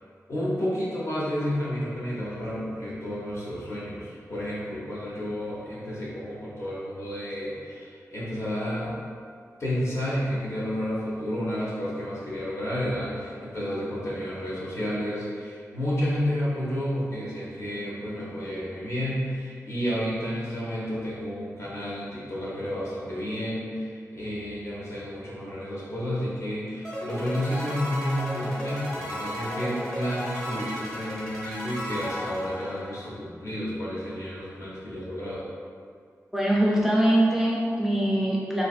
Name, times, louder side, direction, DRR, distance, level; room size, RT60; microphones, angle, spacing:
voice 1, 0.3-8.9 9.6-35.5, equal, 55° left, -7 dB, 0.7 m, -31 dB
sound 1, 26.8-33.1, equal, 10° left, 0.7 m, -34 dB
voice 2, 36.3-38.7, right 1 dB, 5° right, -4 dB, 0.3 m, -23 dB
2.5 x 2.4 x 2.3 m, 2.1 s
wide cardioid pair, 80°, 6 cm